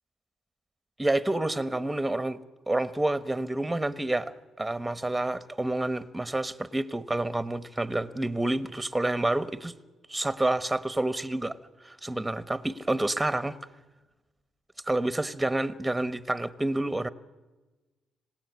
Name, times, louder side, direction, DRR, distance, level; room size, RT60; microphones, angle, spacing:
voice 1, 1.0-2.4 2.7-9.7 10.1-11.6 11.8-13.6 14.8-17.1, right 2 dB, 10° right, 13 dB, 1.2 m, -28 dB
26.0 x 18.0 x 9.6 m, 1.2 s
cardioid pair, 90°, 0 cm